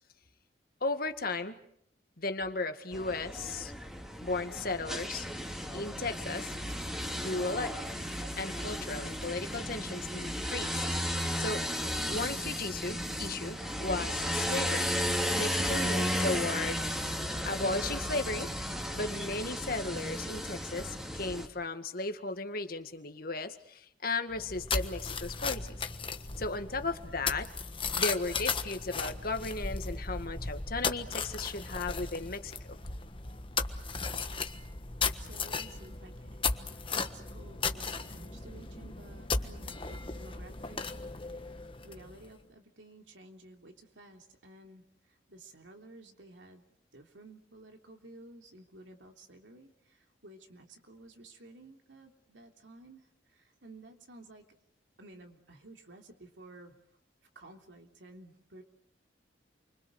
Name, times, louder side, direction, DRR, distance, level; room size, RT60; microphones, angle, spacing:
voice 1, 0.8-1.6 2.2-3.7 4.2-5.3 5.7-6.5 7.1-7.7 8.4-10.8 11.4-11.6 12.1-14.9 15.3-16.8 17.5-18.5 18.9-25.8 26.4-27.5 28.0-32.8, left 3 dB, 55° left, 8 dB, 2.0 m, -35 dB
sound 1, 2.9-21.5, equal, 5° right, 2.5 m, -34 dB
sound 2, 24.3-42.3, left 4 dB, 30° left, 1.4 m, -36 dB
voice 2, 35.2-36.4 36.7-40.9 41.1-41.3 41.8-54.4 55.0-56.8 57.3-58.6, right 2 dB, 90° right, 3 dB, 3.4 m, -53 dB
29.5 x 24.5 x 6.5 m, 0.68 s
head